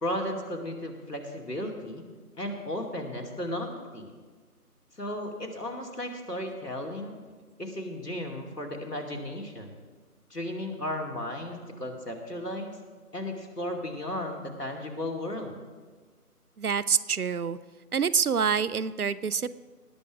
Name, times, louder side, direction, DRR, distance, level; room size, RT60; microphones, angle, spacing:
voice 1, 0.0-2.0 2.4-4.1 4.9-7.2 7.6-9.8 10.3-12.8 13.1-15.6, left 1 dB, 85° left, 2 dB, 2.5 m, -35 dB
voice 2, 16.6-17.6 17.9-19.5, right 6 dB, 70° right, 18 dB, 0.6 m, -26 dB
18.5 x 7.3 x 5.0 m, 1.4 s
figure-of-eight pair, 165°, 46 cm